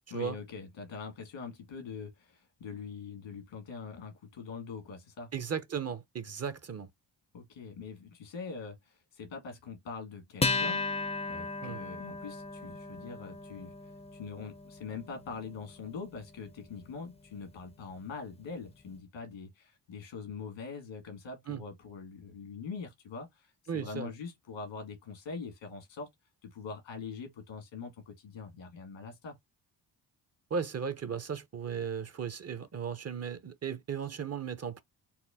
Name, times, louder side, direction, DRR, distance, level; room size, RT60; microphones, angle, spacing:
voice 1, 0.1-5.3 7.3-10.9 11.3-13.7 14.1-26.1 26.4-29.4, left 5 dB, 85° left, 1.7 m, -43 dB
voice 2, 5.3-6.9 11.6-11.8 21.5-21.6 23.7-24.1 30.5-34.8, right 7 dB, 35° right, 0.6 m, -36 dB
Acoustic guitar, 10.4-17.2, left 3 dB, 15° left, 0.4 m, -36 dB
4.2 x 2.1 x 3.4 m
cardioid pair, 65°, 45 cm